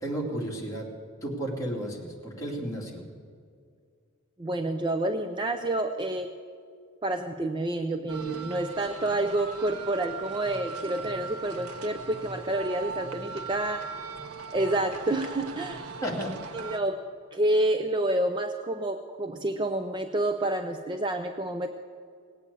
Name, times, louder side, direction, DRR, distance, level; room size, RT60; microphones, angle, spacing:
voice 1, 0.0-0.9 1.2-3.0 16.0-16.3, right 1 dB, 15° left, -3 dB, 2.8 m, -33 dB
voice 2, 4.4-6.3 7.0-13.9 14.5-15.8 16.5-17.0 17.3-21.7, right 1 dB, 20° right, 6 dB, 0.5 m, -28 dB
sound 1, 8.1-16.8, right 5 dB, 85° right, 1.0 m, -39 dB
19.0 x 8.3 x 8.5 m, 2.2 s
head